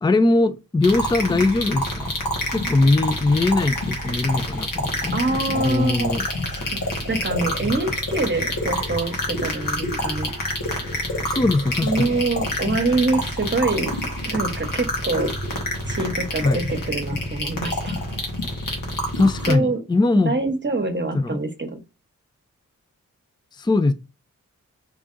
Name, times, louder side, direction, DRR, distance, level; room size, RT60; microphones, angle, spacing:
voice 1, 0.0-2.2 2.5-6.3 11.3-12.1 16.4-16.6 19.2-20.3 21.1-21.4 23.6-23.9, left 2 dB, 15° left, 0.4 m, -21 dB
sound 1, 0.8-19.5, left 1 dB, 85° left, 1.4 m, -27 dB
voice 2, 5.1-6.1 6.5-6.8 7.1-10.3 11.8-13.9 14.2-15.3 15.9-18.0 19.5-19.8 20.2-21.8, right 2 dB, 35° right, 1.0 m, -25 dB
3.5 x 3.3 x 2.5 m
cardioid pair, 50°, 32 cm